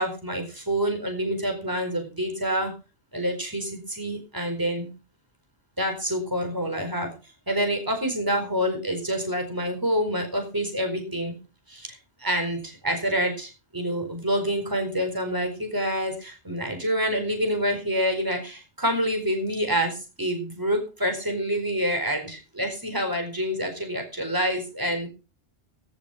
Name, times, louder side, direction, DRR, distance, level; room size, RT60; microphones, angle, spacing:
voice 1, 0.0-2.7 3.1-4.9 5.8-7.1 7.5-11.3 11.7-11.9 12.2-25.1, equal, 20° right, 4 dB, 4.6 m, -27 dB
17.5 x 7.3 x 5.9 m, 0.33 s
omnidirectional pair, 1.1 m